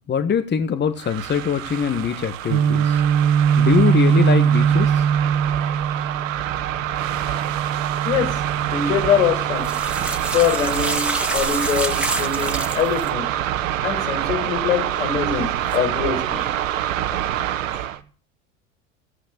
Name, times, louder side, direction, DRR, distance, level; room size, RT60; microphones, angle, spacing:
voice 1, 0.1-3.0 3.6-5.1 6.0-6.1, left 7 dB, 25° left, 1.5 m, -22 dB
sound 1, 1.0-18.0, right 12 dB, 70° right, 1.3 m, -26 dB
Guitar, 2.5-10.3, right 8 dB, 45° right, 1.5 m, -21 dB
voice 2, 8.0-9.8 10.3-13.3 13.8-16.5 17.1-17.3 17.7-17.8, left 7 dB, 75° left, 4.8 m, -24 dB
sound 2, 9.6-13.1 15.6-15.8, right 1 dB, 5° right, 2.4 m, -28 dB
15.5 x 9.5 x 8.1 m
hypercardioid pair, 75°, 40 cm